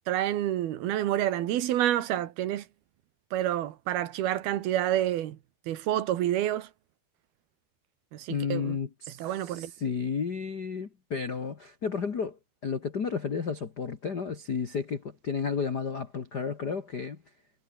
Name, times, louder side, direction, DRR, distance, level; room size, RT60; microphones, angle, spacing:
voice 1, 0.1-2.6 3.3-5.4 5.7-6.7 8.1-8.8 9.2-9.7, right 12 dB, 70° right, 3.2 m, -28 dB
voice 2, 8.3-17.2, left 5 dB, 70° left, 0.9 m, -32 dB
omnidirectional pair, 4.7 m